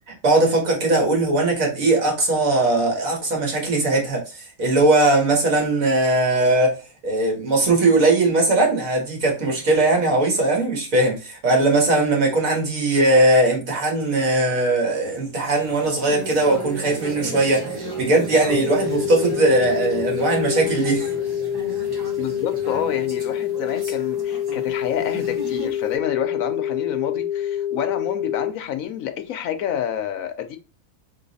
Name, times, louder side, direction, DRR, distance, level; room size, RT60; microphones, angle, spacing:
voice 1, 0.1-21.1, right 2 dB, 75° right, 1.9 m, -19 dB
sound 1, 15.4-25.9, right 2 dB, 20° right, 0.9 m, -34 dB
sound 2, 18.5-28.5, left 10 dB, 55° left, 0.8 m, -26 dB
voice 2, 22.2-30.6, left 9 dB, 75° left, 1.1 m, -28 dB
3.9 x 3.2 x 4.0 m
omnidirectional pair, 1.5 m